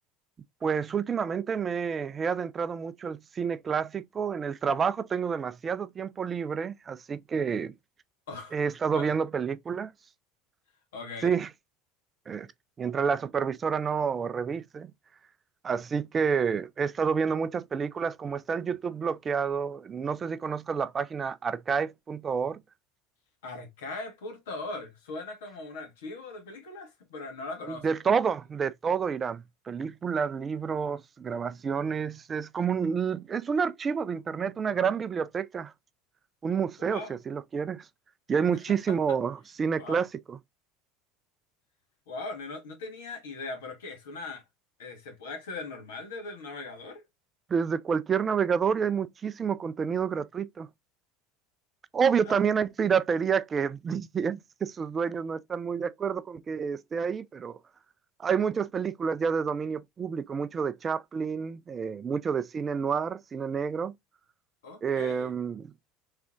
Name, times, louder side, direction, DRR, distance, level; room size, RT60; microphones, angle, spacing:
voice 1, 0.6-7.7 8.5-9.9 11.2-11.5 12.3-12.5 12.8-14.9 15.6-22.6 27.7-35.7 36.4-37.9 38.3-40.4 47.5-50.7 51.9-57.6 58.2-63.9 64.8-65.7, right 6 dB, 30° right, 0.4 m, -29 dB
voice 2, 8.3-8.6 8.9-9.1 10.9-11.3 23.4-27.9 36.8-37.2 38.9-39.2 39.7-40.0 42.1-44.4 44.8-47.0 52.2-52.4 64.6-65.3, left 3 dB, 75° left, 1.6 m, -40 dB
3.6 x 3.3 x 3.5 m
hypercardioid pair, 75°, 0 cm